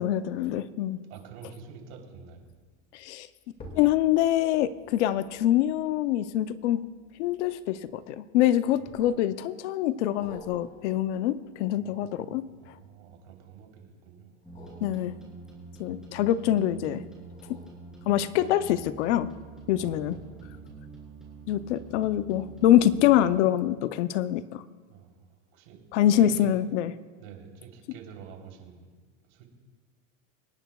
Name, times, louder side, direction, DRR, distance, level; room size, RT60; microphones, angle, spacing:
voice 1, 0.0-1.0 2.9-3.3 3.8-6.9 7.2-12.5 14.8-15.1 15.8-17.0 17.5-17.6 18.1-19.3 19.7-20.2 21.5-24.6 25.9-26.9, left 12 dB, 70° left, 14 dB, 0.7 m, -25 dB
voice 2, 1.1-2.4 11.8-14.3 19.7-20.7 24.9-25.8 26.1-26.5 27.2-28.9 29.2-29.4, right 6 dB, 60° right, 0 dB, 3.4 m, -48 dB
sound 1, 3.5-8.2 8.9-9.5 10.2-13.2 14.4-16.4 17.2-18.6 19.1-19.2, left 2 dB, 20° left, 2.1 m, -52 dB
sound 2, 14.4-23.3, right 4 dB, ahead, 3.2 m, -46 dB
26.5 x 10.0 x 2.3 m, 1.5 s
supercardioid pair, 150°, 37 cm